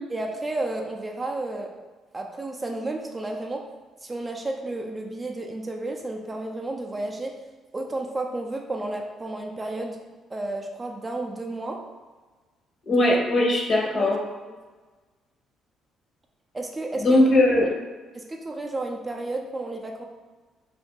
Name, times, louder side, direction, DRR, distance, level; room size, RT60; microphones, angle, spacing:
voice 1, 0.1-1.7 2.1-3.6 4.0-7.4 7.7-10.0 10.3-11.8 12.9-13.0 13.8-14.2 14.5-14.6 16.5-17.2 17.6-17.7 18.1-20.1, right 2 dB, 25° right, 2 dB, 0.4 m, -32 dB
voice 2, 12.9-14.2 17.0-17.7, left 1 dB, 50° left, -1 dB, 0.8 m, -19 dB
2.5 x 2.2 x 3.6 m, 1.3 s
cardioid pair, 85°, 0 cm